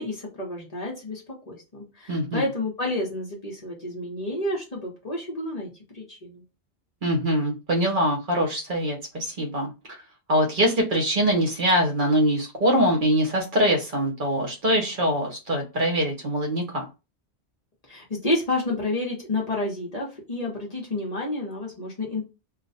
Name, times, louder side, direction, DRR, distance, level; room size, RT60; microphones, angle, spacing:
voice 1, 0.0-6.4 17.8-22.2, left 2 dB, 40° left, -2 dB, 1.0 m, -30 dB
voice 2, 2.1-2.5 7.0-9.7 10.3-16.9, equal, 50° right, 0 dB, 0.9 m, -23 dB
2.5 x 2.3 x 4.0 m, 0.29 s
omnidirectional pair, 1.1 m